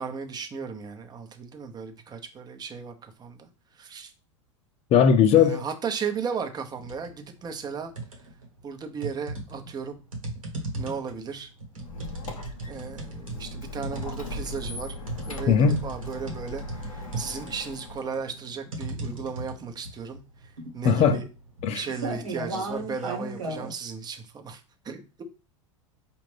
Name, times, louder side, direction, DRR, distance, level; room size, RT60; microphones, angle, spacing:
voice 1, 0.0-3.5 3.7-4.1 5.4-7.9 8.6-10.0 10.8-11.5 12.7-15.0 15.3-21.3 21.7-25.2, right 6 dB, 25° right, 0.8 m, -35 dB
voice 2, 4.9-5.6 15.5-15.8 20.8-21.2 21.6-21.8, left 7 dB, 40° left, 0.7 m, -18 dB
sound 1, 6.8-7.1 7.5-8.5 9.0-23.7, right 2 dB, 90° right, 1.3 m, -36 dB
Squeak, 11.8-18.2, left 1 dB, 85° left, 0.8 m, -38 dB
4.9 x 2.5 x 3.3 m
hypercardioid pair, 90°, 17 cm